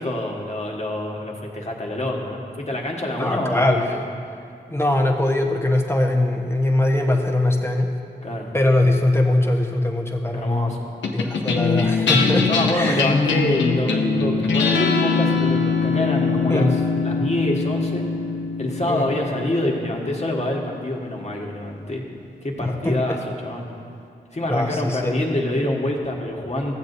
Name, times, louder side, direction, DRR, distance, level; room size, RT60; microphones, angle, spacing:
voice 1, 0.0-3.8 8.2-8.5 10.3-10.8 12.4-18.0 18.6-22.0 22.4-23.2 23.4-23.7 24.3-26.7, left 1 dB, 35° left, -1 dB, 1.6 m, -26 dB
voice 2, 3.2-4.0 4.7-7.9 8.5-10.7 11.1-13.1 16.5-16.8 18.9-19.1 22.6-23.2 24.5-25.2, left 1 dB, 15° left, 2 dB, 1.2 m, -21 dB
sound 1, 11.0-21.6, left 4 dB, 85° left, 0.8 m, -23 dB
14.5 x 7.5 x 2.7 m, 2.5 s
cardioid pair, 40°, 19 cm